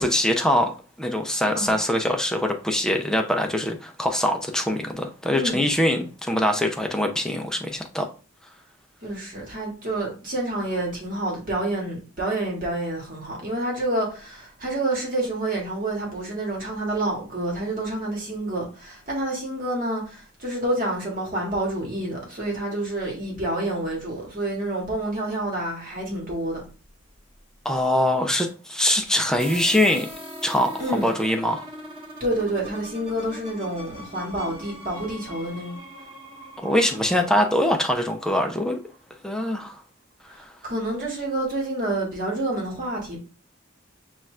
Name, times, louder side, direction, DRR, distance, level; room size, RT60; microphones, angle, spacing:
voice 1, 0.0-8.1 27.6-30.1 30.4-31.7 36.6-38.8 39.2-39.8, left 1 dB, 5° left, 0.4 m, -23 dB
voice 2, 9.0-26.6 30.8-31.1 32.2-35.8 40.3-43.2, right 1 dB, 40° right, 1.5 m, -28 dB
sound 1, 29.4-39.0, right 1 dB, 25° right, 1.2 m, -41 dB
5.5 x 2.4 x 3.1 m
head